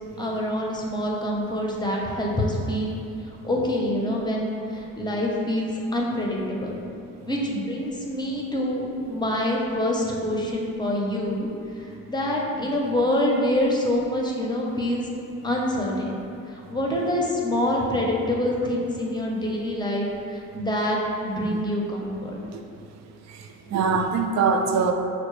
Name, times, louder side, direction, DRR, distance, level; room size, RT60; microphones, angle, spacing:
voice 1, 0.2-3.0 3.4-6.8 7.3-11.5 12.1-15.0 15.4-16.2 16.7-20.1 20.3-21.0 21.2-22.4, left 1 dB, 15° left, -2 dB, 0.6 m, -26 dB
voice 2, 23.3-24.9, right 5 dB, 60° right, 4 dB, 0.4 m, -23 dB
5.6 x 2.0 x 3.1 m, 2.6 s
cardioid pair, 90°, 30 cm